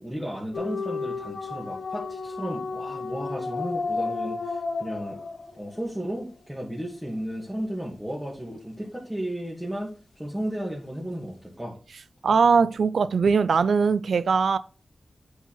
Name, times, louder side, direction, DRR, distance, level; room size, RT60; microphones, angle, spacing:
voice 1, 0.0-5.2 5.6-9.9 10.2-11.8, equal, 10° right, 2.5 m, -34 dB
sound 1, 0.5-5.8, left 4 dB, 80° left, 1.1 m, -32 dB
voice 2, 12.2-14.6, right 5 dB, 90° right, 0.4 m, -21 dB
7.9 x 4.9 x 3.9 m
cardioid pair, 50°, 0 cm